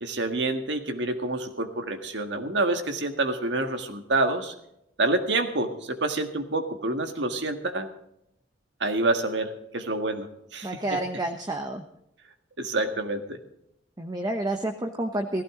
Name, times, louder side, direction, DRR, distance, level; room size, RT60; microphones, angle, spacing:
voice 1, 0.0-4.5 5.0-7.9 8.8-11.0 12.6-13.4, right 2 dB, 65° right, 6 dB, 1.8 m, -27 dB
voice 2, 10.6-11.8 14.0-15.4, right 1 dB, 20° right, 4 dB, 1.0 m, -29 dB
16.5 x 15.5 x 3.8 m, 0.78 s
head